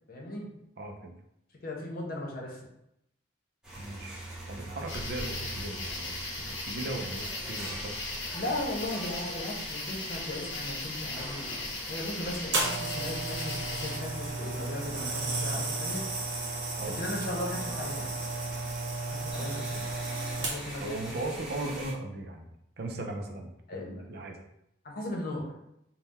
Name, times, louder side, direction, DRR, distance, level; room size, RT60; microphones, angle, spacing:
voice 1, 0.1-0.5 1.6-2.6 8.3-16.1 16.9-18.2 19.1-19.9 20.4-21.0 23.7-24.0 24.8-25.5, left 1 dB, 50° left, -1 dB, 0.9 m, -37 dB
voice 2, 0.8-1.1 3.8-4.2 4.5-8.3 16.8-17.0 20.8-22.4 22.8-24.4, right 2 dB, 55° right, 3 dB, 0.5 m, -38 dB
sound 1, 3.6-21.9, right 1 dB, 5° right, 0.8 m, -44 dB
sound 2, 4.9-14.0, left 2 dB, 85° left, 0.9 m, -38 dB
sound 3, 12.5-20.9 21.6-21.8, right 3 dB, 85° right, 1.0 m, -34 dB
3.6 x 2.2 x 4.1 m, 0.80 s
head